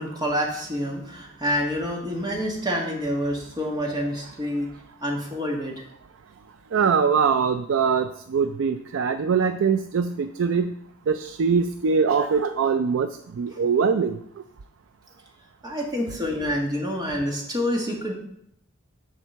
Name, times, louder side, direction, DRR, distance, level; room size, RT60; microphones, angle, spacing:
voice 1, 0.0-4.7 5.0-5.7 15.6-18.1, equal, 20° right, -1 dB, 1.6 m, -27 dB
voice 2, 6.7-10.7 11.1-13.1 13.4-14.2, right 6 dB, 75° right, 9 dB, 0.4 m, -22 dB
7.4 x 4.4 x 6.8 m, 0.72 s
head